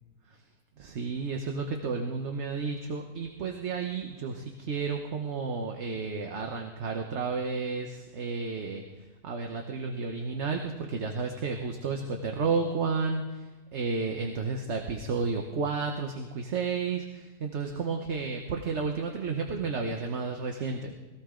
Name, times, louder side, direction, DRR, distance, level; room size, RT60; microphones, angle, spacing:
voice 1, 0.8-8.8 9.2-21.0, right 4 dB, 50° right, 3 dB, 1.3 m, -32 dB
21.5 x 16.0 x 3.8 m, 1.2 s
omnidirectional pair, 1.7 m